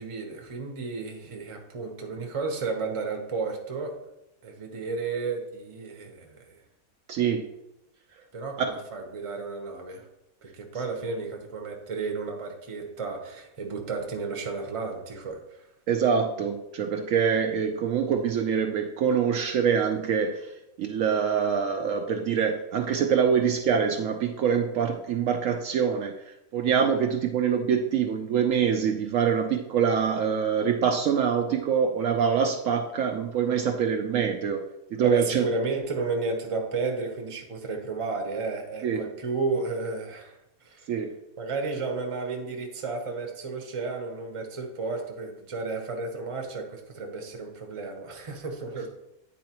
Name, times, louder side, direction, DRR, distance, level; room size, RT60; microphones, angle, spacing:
voice 1, 0.0-4.0 4.4-6.6 8.3-10.1 10.4-15.6 35.0-40.9 41.4-48.9, right 4 dB, 30° right, 3 dB, 0.7 m, -32 dB
voice 2, 7.1-7.5 8.6-8.7 15.9-20.4 20.8-26.1 26.5-35.4 38.8-39.0 40.9-41.1, right 7 dB, 70° right, 4 dB, 0.9 m, -25 dB
9.4 x 4.3 x 2.9 m, 0.85 s
omnidirectional pair, 1.6 m